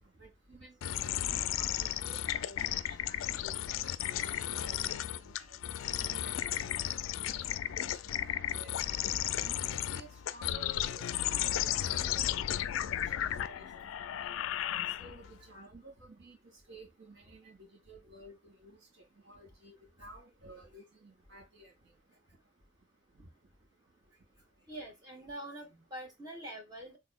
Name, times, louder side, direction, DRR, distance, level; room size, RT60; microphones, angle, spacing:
voice 1, 0.2-3.6 4.1-5.6 6.0-6.5 7.1-8.7 9.4-12.5 12.8-14.1 15.0-16.4 16.7-17.6 17.9-21.7 23.2-23.3, right 1 dB, 65° right, 2.0 m, -54 dB
sound 1, 0.8-15.3, left 11 dB, 90° left, 0.3 m, -34 dB
voice 2, 24.7-27.0, right 1 dB, 20° right, 1.1 m, -44 dB
4.0 x 3.5 x 2.2 m
head